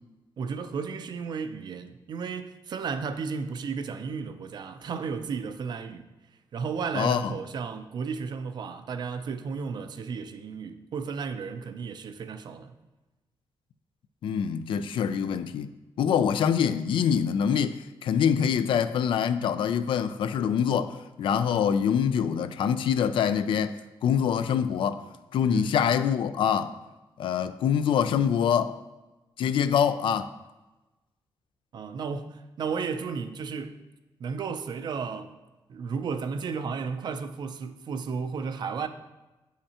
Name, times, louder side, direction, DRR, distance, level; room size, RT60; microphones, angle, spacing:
voice 1, 0.4-6.1 6.5-12.8 15.1-15.4 25.5-25.8 31.7-33.8 34.2-35.4 35.7-38.9, right 5 dB, 55° right, 0.5 m, -33 dB
voice 2, 6.9-7.3 14.2-15.7 16.0-23.8 24.0-25.0 25.3-26.7 27.2-28.8 29.4-30.3, left 8 dB, 75° left, 0.4 m, -25 dB
8.2 x 5.6 x 2.9 m
wide cardioid pair, 135°, 9 cm